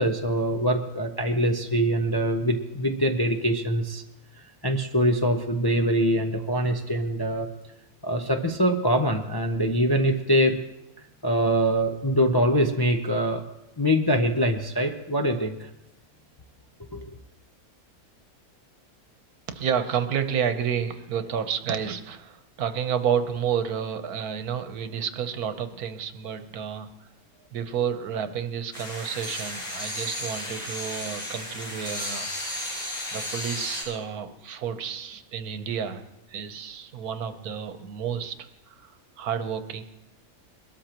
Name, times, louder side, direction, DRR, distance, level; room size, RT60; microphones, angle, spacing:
voice 1, 0.0-4.0 4.6-7.5 8.0-10.6 11.2-13.4 13.8-15.7 16.9-17.2, equal, 25° left, 3 dB, 0.5 m, -24 dB
voice 2, 19.5-27.1 27.5-32.6 33.1-36.0 36.3-38.3 38.7-39.8, right 8 dB, 85° right, 9 dB, 1.4 m, -30 dB
sound 1, 28.7-33.8, left 1 dB, 90° left, 7.7 m, -34 dB
22.0 x 13.0 x 3.0 m, 0.90 s
omnidirectional pair, 1.6 m